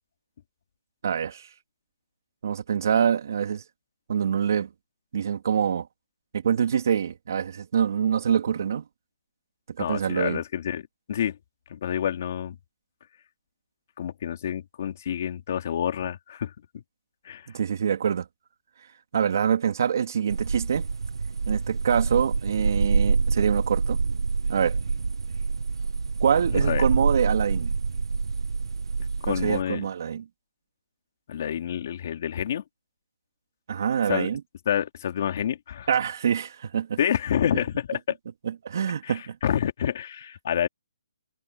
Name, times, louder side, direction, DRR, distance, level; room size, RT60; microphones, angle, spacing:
voice 1, 1.0-1.5 2.4-3.6 4.1-4.7 5.1-5.9 6.3-8.8 9.8-10.4 17.5-18.3 19.1-20.9 21.5-24.0 24.5-24.8 26.2-27.7 29.3-30.2 33.7-34.4 35.9-37.0 38.4-39.4, right 7 dB, 45° right, 3.1 m, -25 dB
voice 2, 9.8-11.4 11.7-12.6 14.0-16.5 17.2-17.5 26.5-26.8 29.2-29.8 31.3-32.6 34.1-34.3 34.7-35.9 37.0-38.2 39.0-40.7, left 9 dB, 35° left, 2.9 m, -28 dB
sound 1, 20.3-29.6, right 4 dB, 85° right, 0.8 m, -26 dB
hypercardioid pair, 175°, 3 cm